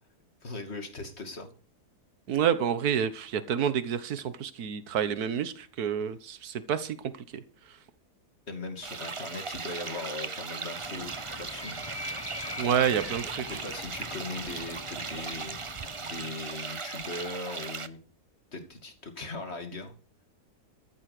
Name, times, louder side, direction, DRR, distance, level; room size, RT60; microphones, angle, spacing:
voice 1, 0.4-1.5 8.5-11.8 13.4-15.7 16.0-18.0 18.5-19.9, left 2 dB, 40° left, 6 dB, 2.6 m, -39 dB
voice 2, 2.3-7.0 7.3-7.4 12.6-13.6, right 8 dB, 70° right, 13 dB, 1.7 m, -28 dB
sound 1, 8.8-17.9, right 4 dB, 35° right, 0.5 m, -38 dB
Animal, 10.6-16.5, left 3 dB, 20° left, 0.9 m, -43 dB
14.0 x 8.9 x 6.6 m, 0.38 s
omnidirectional pair, 1.7 m